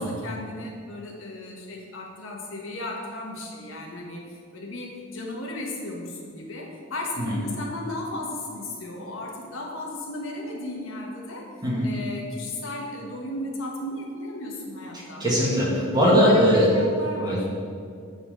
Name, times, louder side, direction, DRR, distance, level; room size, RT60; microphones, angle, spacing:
voice 1, 0.0-11.5 11.8-15.2 16.0-17.6, left 1 dB, 80° left, 0 dB, 1.3 m, -35 dB
voice 2, 15.2-16.7 17.2-17.4, equal, 20° right, -6 dB, 1.8 m, -20 dB
8.2 x 3.9 x 5.2 m, 2.3 s
head